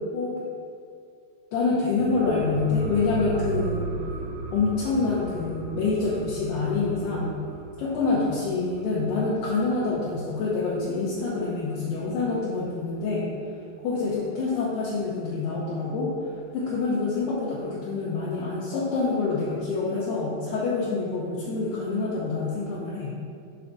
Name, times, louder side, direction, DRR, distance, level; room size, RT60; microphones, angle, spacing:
voice 1, 1.5-3.9 4.5-7.3 7.8-13.3 13.8-23.1, left 3 dB, 85° left, -7 dB, 2.3 m, -26 dB
sound 1, 1.8-11.0 11.3-11.4, right 4 dB, 85° right, 3.2 m, -37 dB
8.0 x 3.4 x 5.2 m, 2.4 s
omnidirectional pair, 5.6 m